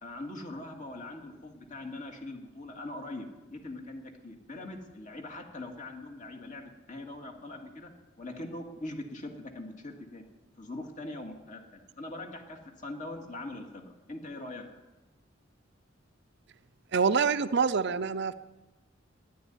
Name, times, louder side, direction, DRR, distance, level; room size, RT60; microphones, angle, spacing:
voice 1, 0.0-7.9 8.2-10.2 10.6-14.6, left 2 dB, 40° left, 2 dB, 2.3 m, -42 dB
voice 2, 16.9-18.3, right 5 dB, 60° right, 13 dB, 0.6 m, -26 dB
12.0 x 11.0 x 9.8 m, 1.1 s
head